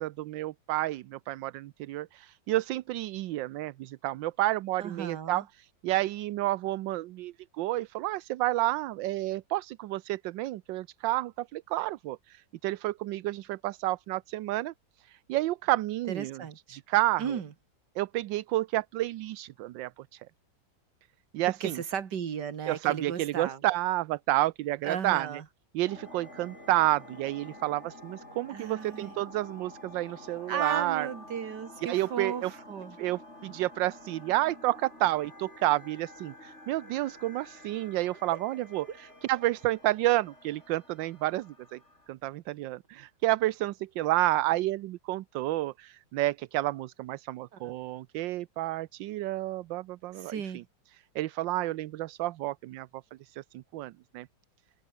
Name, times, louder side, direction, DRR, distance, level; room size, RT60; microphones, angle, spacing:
voice 1, 0.0-16.4 16.7-17.4 18.0-20.3 21.3-21.8 22.7-25.3 25.7-31.1 31.9-32.5 33.0-41.8 42.1-50.6 51.1-52.9 53.2-54.3, right 16 dB, 85° right, 1.3 m, -30 dB
voice 2, 4.8-5.4 16.1-16.8 17.2-17.5 21.5-23.6 24.8-25.4 28.5-29.1 30.5-33.0 38.3-38.4 38.9-39.0 47.5-47.7 50.1-50.6, right 7 dB, 65° right, 2.3 m, -35 dB
sound 1, 25.8-42.1, left 1 dB, 35° left, 7.5 m, -50 dB
omnidirectional pair, 2.0 m